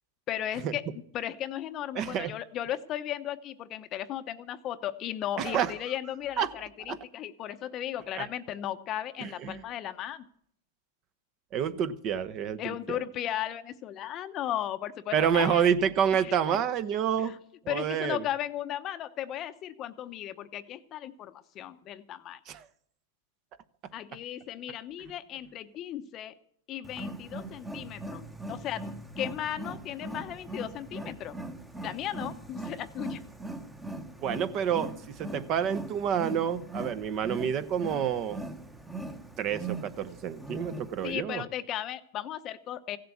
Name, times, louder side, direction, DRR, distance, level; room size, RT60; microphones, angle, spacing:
voice 1, 0.3-0.8 1.1-10.2 12.6-15.7 16.2-16.6 17.2-17.4 17.7-22.4 23.9-26.4 26.7-28.8 29.2-31.4 31.8-33.2 41.0-43.0, left 11 dB, 30° left, 11 dB, 0.8 m, -36 dB
voice 2, 1.9-2.3 5.4-5.7 6.4-6.5 6.9-7.0 8.1-8.2 9.2-9.6 11.5-12.8 15.1-17.4 17.7-18.2 22.5-22.6 34.2-34.9 35.2-38.4 39.4-41.4, right 8 dB, 35° right, 14 dB, 0.8 m, -28 dB
Wild animals, 26.8-41.1, right 2 dB, 5° right, 1.0 m, -40 dB
16.0 x 7.7 x 8.5 m, 0.66 s
supercardioid pair, 150°, 0 cm